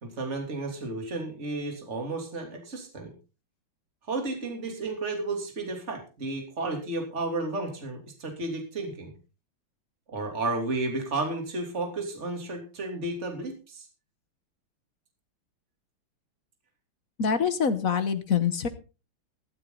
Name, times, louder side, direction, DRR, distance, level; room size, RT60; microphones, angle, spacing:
voice 1, 0.0-3.1 4.1-9.1 10.1-13.9, right 2 dB, 30° right, 3 dB, 3.3 m, -32 dB
voice 2, 17.2-18.7, left 6 dB, 45° left, 11 dB, 1.3 m, -25 dB
15.0 x 13.5 x 4.0 m, 0.34 s
omnidirectional pair, 2.4 m